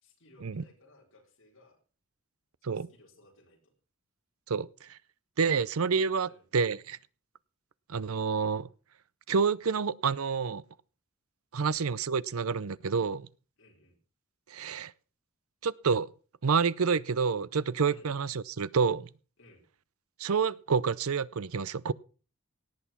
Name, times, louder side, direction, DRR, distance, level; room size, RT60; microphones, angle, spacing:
voice 1, 0.0-1.8 2.6-3.7 6.2-6.4 11.6-11.8 13.6-14.0 17.9-18.1 19.4-19.7, left 1 dB, 65° left, 4.2 m, -59 dB
voice 2, 4.5-5.0 5.4-7.0 7.9-8.7 9.3-10.6 11.5-13.3 14.5-14.9 15.6-16.1 16.4-19.1 20.2-21.9, right 5 dB, 80° right, 0.6 m, -28 dB
18.0 x 8.3 x 5.7 m
head